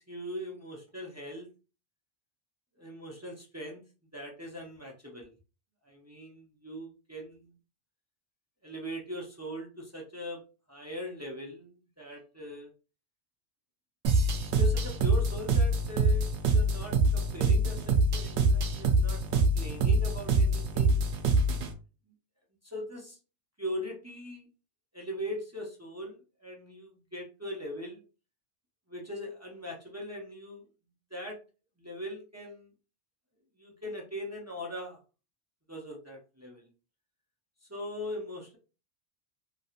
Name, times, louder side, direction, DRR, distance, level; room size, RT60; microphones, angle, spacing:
voice 1, 0.0-1.5 2.8-3.8 4.1-5.3 5.9-7.5 8.6-10.4 10.7-12.7 14.5-21.1 22.6-23.2 23.6-24.5 24.9-28.0 28.9-30.6 31.1-31.4 31.8-32.7 33.6-35.0 35.7-36.7 37.7-38.6, equal, 25° right, -2 dB, 0.4 m, -40 dB
sound 1, 14.0-21.7, right 2 dB, 75° right, 0.8 m, -25 dB
2.9 x 2.7 x 2.4 m, 0.33 s
omnidirectional pair, 1.2 m